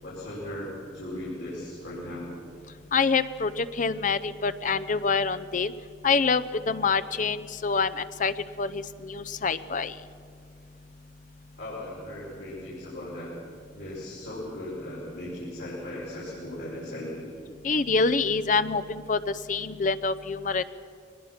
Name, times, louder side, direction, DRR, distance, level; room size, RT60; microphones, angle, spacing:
voice 1, 0.0-2.3 11.6-13.3 13.7-17.3, left 1 dB, 80° left, -8 dB, 5.0 m, -37 dB
voice 2, 2.9-5.7 6.0-9.9 17.6-20.6, left 4 dB, 45° left, 14 dB, 0.6 m, -26 dB
23.0 x 19.5 x 5.9 m, 2.2 s
head